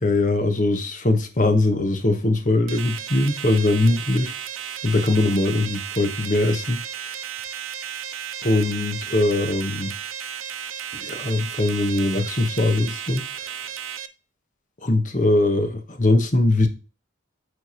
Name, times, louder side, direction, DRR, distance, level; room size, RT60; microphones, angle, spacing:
voice 1, 0.0-4.3 4.8-6.8 8.4-9.9 10.9-13.2 14.8-16.7, left 2 dB, 40° left, 1.0 m, -21 dB
sound 1, 2.7-14.1, right 9 dB, 90° right, 0.6 m, -34 dB
9.1 x 3.4 x 4.3 m
head